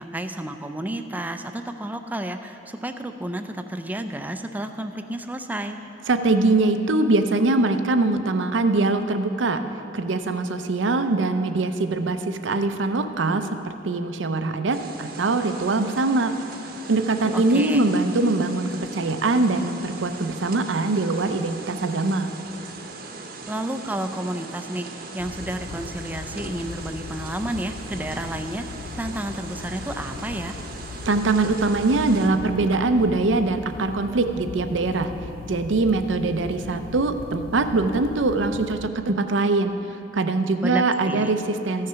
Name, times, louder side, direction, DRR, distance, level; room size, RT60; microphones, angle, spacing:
voice 1, 0.0-5.8 17.3-17.8 23.5-30.6 40.6-41.3, right 1 dB, 10° right, 7 dB, 0.4 m, -31 dB
voice 2, 6.1-9.6 9.9-16.3 16.9-22.3 31.1-35.1 35.5-39.7 40.1-41.9, right 3 dB, 85° right, 8 dB, 0.6 m, -22 dB
sound 1, 14.7-32.3, right 3 dB, 55° right, 0.9 m, -39 dB
sound 2, 25.2-38.9, left 4 dB, 50° left, 0.3 m, -39 dB
14.5 x 6.6 x 5.7 m, 2.8 s
head